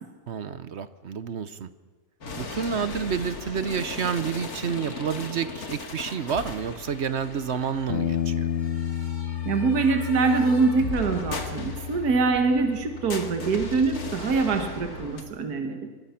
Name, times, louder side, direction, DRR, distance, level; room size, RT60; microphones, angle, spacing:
voice 1, 0.3-1.7 2.3-8.5, right 7 dB, 50° right, 13 dB, 1.0 m, -29 dB
sound 1, 2.2-15.2, left 3 dB, 70° left, 2.5 m, -38 dB
Bass guitar, 7.9-14.1, left 9 dB, 45° left, 1.1 m, -32 dB
voice 2, 9.5-15.9, right 4 dB, 75° right, 5 dB, 2.0 m, -24 dB
23.5 x 21.0 x 5.9 m, 1.4 s
omnidirectional pair, 1.7 m